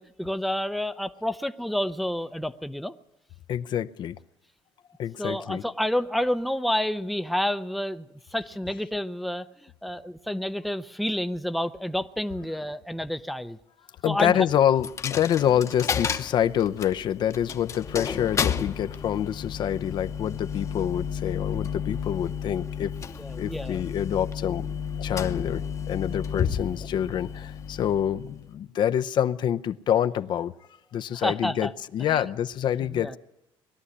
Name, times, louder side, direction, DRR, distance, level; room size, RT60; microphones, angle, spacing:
voice 1, 0.0-3.0 5.2-13.6 14.0-14.5 23.1-23.8 31.1-31.7 32.1-32.2 32.8-33.2, left 1 dB, ahead, 0.6 m, -29 dB
voice 2, 3.5-4.2 5.0-5.6 14.0-23.0 23.4-24.7 25.0-30.5 30.9-33.2, left 10 dB, 50° left, 0.7 m, -26 dB
Coin (dropping), 14.8-28.6, left 7 dB, 30° left, 1.0 m, -32 dB
21.0 x 13.0 x 9.8 m
cardioid pair, 140°, 10 cm